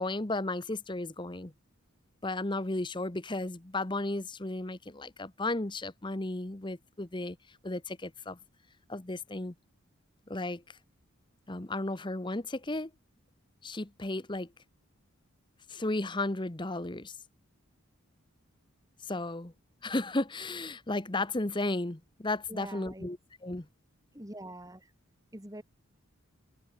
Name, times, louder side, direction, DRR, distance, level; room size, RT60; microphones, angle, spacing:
voice 1, 0.0-1.5 2.2-7.4 7.6-8.4 8.9-9.5 10.3-10.6 11.5-12.9 13.6-14.5 15.7-17.2 19.1-19.5 19.8-23.2 23.4-23.7, left 2 dB, 20° left, 1.0 m, -34 dB
voice 2, 22.5-23.1 24.1-24.9 25.3-25.6, right 1 dB, 15° right, 3.7 m, -44 dB
head